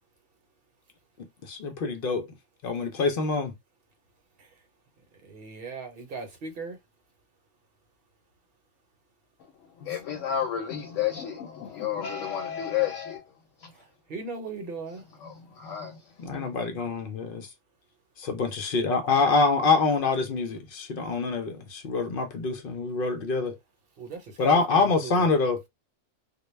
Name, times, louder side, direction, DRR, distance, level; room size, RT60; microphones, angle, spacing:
voice 1, 1.5-2.3 2.6-3.5 9.8-10.2 16.2-17.5 18.2-23.6 24.4-25.6, left 4 dB, 60° left, 0.6 m, -26 dB
voice 2, 5.2-6.8 9.9-10.0 13.7-15.0 24.0-25.3, right 4 dB, 55° right, 0.9 m, -39 dB
voice 3, 9.9-13.2 15.2-15.3 15.6-16.0, left 10 dB, 80° left, 0.9 m, -30 dB
2.2 x 2.1 x 3.0 m
omnidirectional pair, 1.3 m